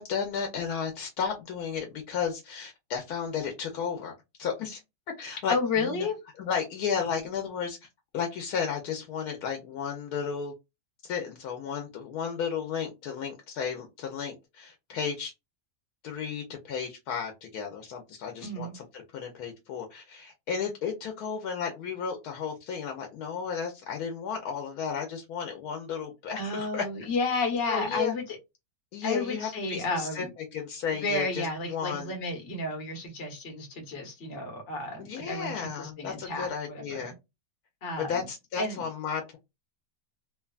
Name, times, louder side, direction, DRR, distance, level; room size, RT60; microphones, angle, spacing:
voice 1, 0.0-4.1 4.4-4.8 5.2-5.5 5.8-6.1 6.4-7.9 8.1-10.5 11.0-15.3 16.0-26.8 27.7-28.1 28.9-30.3 30.5-32.1 35.0-37.1 38.1-39.4, left 6 dB, 85° left, 1.1 m, -33 dB
voice 2, 5.5-6.2 18.4-18.7 26.4-28.4 29.0-30.3 30.9-37.1 37.8-38.3 38.6-38.8, left 3 dB, 55° left, 1.3 m, -32 dB
3.0 x 2.2 x 2.3 m
omnidirectional pair, 1.6 m